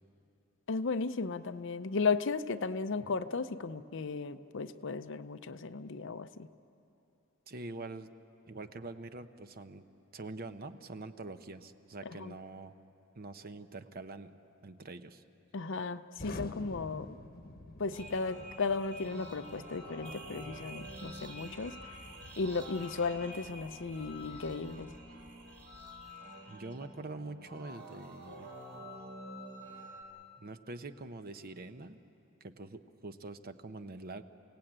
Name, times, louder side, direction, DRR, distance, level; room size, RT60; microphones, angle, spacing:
voice 1, 0.7-6.5 12.2-12.3 15.5-17.2 17.8-21.8 22.4-24.9, left 4 dB, 60° left, 12 dB, 0.7 m, -35 dB
voice 2, 7.5-8.1 8.4-9.9 10.1-12.7 13.1-14.3 14.6-15.2 26.5-28.5 30.4-32.0 32.4-34.2, right 3 dB, 45° right, 10 dB, 0.9 m, -45 dB
Explosion, 16.2-26.1, left 1 dB, 45° left, 1.1 m, -50 dB
sound 1, 17.9-30.0, equal, 65° right, 4.4 m, -48 dB
29.0 x 17.5 x 8.8 m, 2.9 s
head